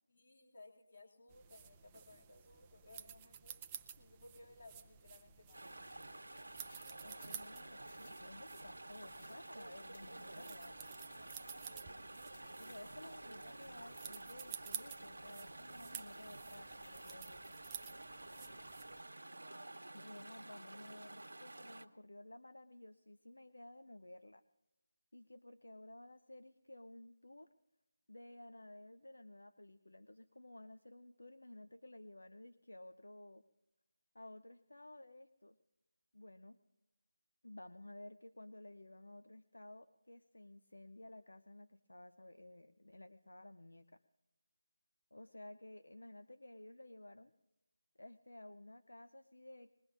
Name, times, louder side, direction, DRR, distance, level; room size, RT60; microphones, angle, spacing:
voice 1, 0.1-6.0 11.5-11.9 18.3-18.6, left 2 dB, 55° left, -2 dB, 2.5 m, -61 dB
sound 1, 1.3-19.0, right 9 dB, 15° right, 0.5 m, -53 dB
sound 2, 3.7-3.9 4.4-4.9 5.2-5.3 5.6-13.0 13.4-14.2 14.6-15.2 15.8-16.4 16.7-17.5 17.8-19.0 19.3-19.9, left 3 dB, 40° left, 2.3 m, -67 dB
Chatter / Stream, 5.5-21.8, right 2 dB, 85° right, 1.2 m, -51 dB
voice 2, 7.0-10.8 12.6-17.6 19.9-24.4 25.1-27.5 28.1-33.4 34.1-35.6 36.1-36.6 37.4-44.0 45.1-47.3 48.0-49.7, left 1 dB, 85° left, 11 dB, 0.7 m, -55 dB
21.5 x 21.0 x 2.6 m, 0.91 s
figure-of-eight pair, 160°, 0 cm